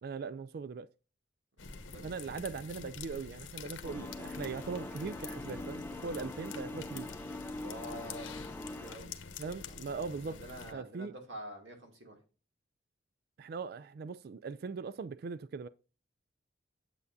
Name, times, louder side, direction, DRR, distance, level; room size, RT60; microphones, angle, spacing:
voice 1, 0.0-0.9 2.0-7.1 9.4-10.4 10.7-11.1 13.4-15.7, right 5 dB, 50° right, 0.3 m, -40 dB
sound 1, 1.6-10.7, left 5 dB, 90° left, 1.0 m, -47 dB
voice 2, 1.6-2.1 7.6-8.3 8.7-9.1 9.6-9.8 10.1-12.2, equal, 80° right, 2.6 m, -47 dB
sound 2, 3.8-9.0, left 2 dB, 10° left, 0.5 m, -43 dB
9.1 x 8.3 x 2.6 m
head